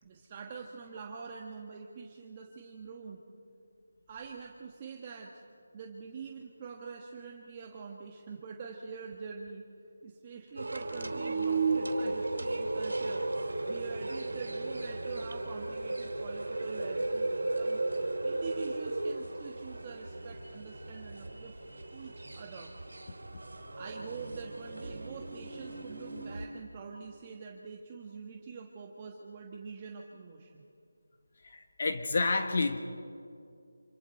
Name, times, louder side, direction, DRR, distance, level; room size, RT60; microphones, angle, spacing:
voice 1, 0.0-3.2 4.1-5.4 5.7-9.7 10.0-17.8 18.2-21.5 21.9-22.8 23.8-30.6, right 5 dB, 25° right, 0 dB, 1.5 m, -45 dB
sound 1, 10.6-26.5, right 2 dB, 85° right, 3.1 m, -35 dB
voice 2, 31.4-32.8, left 3 dB, 50° left, 7 dB, 1.4 m, -29 dB
28.0 x 27.5 x 4.5 m, 2.4 s
figure-of-eight pair, 165°, 0 cm